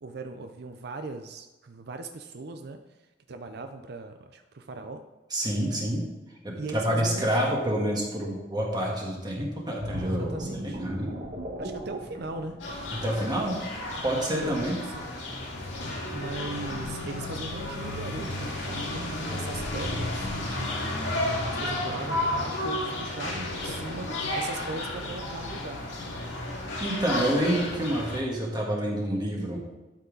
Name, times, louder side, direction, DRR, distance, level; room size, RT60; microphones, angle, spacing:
voice 1, 0.0-2.8 3.3-5.0 6.6-7.6 10.2-10.8 11.6-12.6 14.4-15.2 15.6-20.3 21.0-25.8, right 3 dB, 60° right, 6 dB, 0.6 m, -39 dB
voice 2, 5.3-6.0 6.4-11.1 12.9-13.6 14.0-14.8 26.8-29.6, right 1 dB, 25° right, -2 dB, 1.6 m, -28 dB
sound 1, 9.8-13.4 13.8-14.0, equal, 45° right, 1.5 m, -36 dB
sound 2, 12.6-28.2, left 1 dB, 85° left, 2.1 m, -32 dB
12.0 x 5.6 x 3.9 m, 1.1 s
head